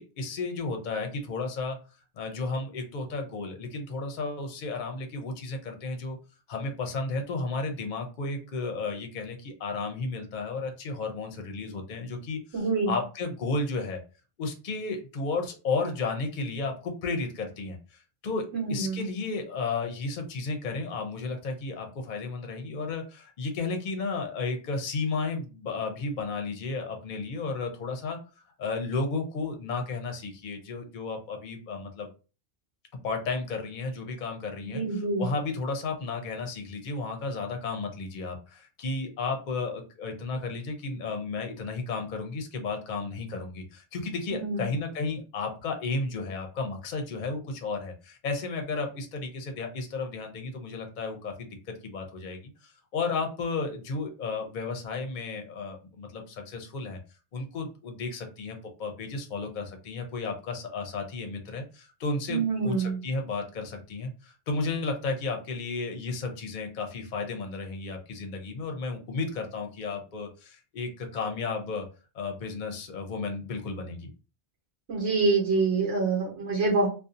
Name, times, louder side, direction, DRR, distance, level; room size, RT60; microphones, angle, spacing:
voice 1, 0.0-1.8 2.2-6.2 6.5-14.0 14.4-32.1 33.0-57.0 57.3-71.9 72.1-74.1, left 3 dB, 50° left, 4 dB, 0.7 m, -33 dB
voice 2, 12.5-12.9 18.5-19.0 34.7-35.3 44.3-44.6 62.3-63.0 74.9-76.9, right 3 dB, 85° right, -3 dB, 1.2 m, -26 dB
2.6 x 2.3 x 2.4 m, 0.33 s
omnidirectional pair, 1.1 m